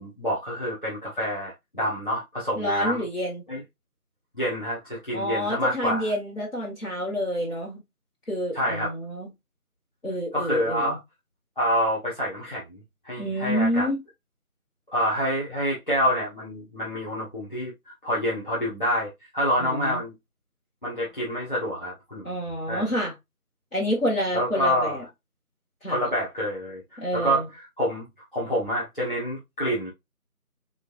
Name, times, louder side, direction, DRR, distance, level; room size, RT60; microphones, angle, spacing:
voice 1, 0.0-3.0 3.5-3.6 4.3-6.1 8.5-8.9 10.3-11.0 11.6-12.6 13.0-13.9 14.9-17.7 18.0-20.1 20.8-22.3 22.7-22.9 24.3-25.0 25.9-28.1 28.3-29.9, equal, 35° left, 1.6 m, -27 dB
voice 2, 2.6-3.4 5.1-7.8 8.3-9.3 10.0-11.0 13.2-14.0 19.6-20.0 22.2-23.1 23.7-25.0 25.8-26.1 27.0-27.5, equal, 60° left, 2.0 m, -28 dB
6.1 x 2.6 x 2.6 m
figure-of-eight pair, 175°, 44 cm